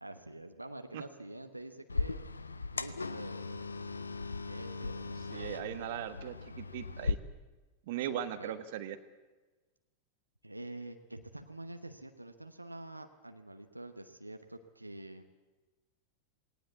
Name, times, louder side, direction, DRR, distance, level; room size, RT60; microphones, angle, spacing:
voice 1, 0.0-2.2 2.7-4.0 4.5-6.0 8.1-8.6 10.4-15.3, right 1 dB, 85° right, 7 dB, 1.1 m, -47 dB
sound 1, 1.9-7.1, left 3 dB, 80° left, 0.8 m, -38 dB
voice 2, 5.3-7.2 7.9-9.0, right 11 dB, 50° right, 11 dB, 1.4 m, -38 dB
19.0 x 18.5 x 8.4 m, 1.2 s
figure-of-eight pair, 90°, 0 cm